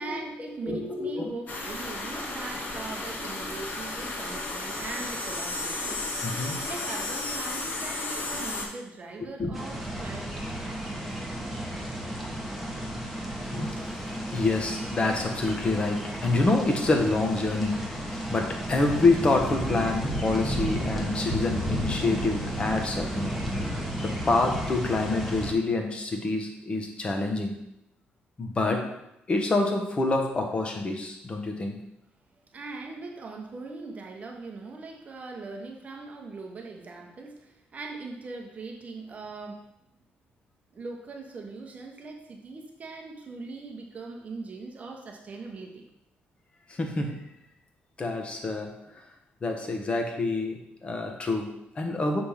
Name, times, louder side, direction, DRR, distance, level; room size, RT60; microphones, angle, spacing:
voice 1, 0.0-11.1 32.4-39.6 40.7-45.8, right 3 dB, 40° right, 1 dB, 0.9 m, -40 dB
voice 2, 0.6-1.3 6.2-6.6 9.4-9.5 13.5-13.8 14.3-27.6 28.4-28.9 29.3-31.8 46.7-47.3 48.0-49.1 49.4-52.2, left 3 dB, 30° left, 3 dB, 1.1 m, -27 dB
sound 1, 1.5-8.7, left 2 dB, 50° left, 1.2 m, -33 dB
sound 2, 9.5-25.5, equal, 5° left, 1.1 m, -33 dB
6.6 x 3.5 x 5.7 m, 0.84 s
cardioid pair, 120°, 4 cm